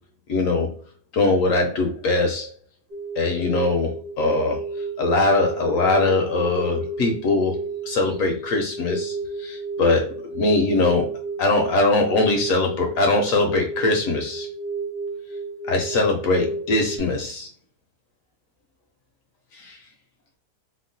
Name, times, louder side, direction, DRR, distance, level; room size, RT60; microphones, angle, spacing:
voice 1, 0.3-0.7 1.1-2.5 3.2-4.6 5.0-7.6 7.9-11.1 11.4-14.5 15.7-17.5 19.5-19.8, left 2 dB, 70° left, 3 dB, 0.9 m, -21 dB
sound 1, 2.9-17.0, right 3 dB, 65° right, 1.7 m, -32 dB
3.5 x 2.0 x 2.6 m, 0.42 s
omnidirectional pair, 1.7 m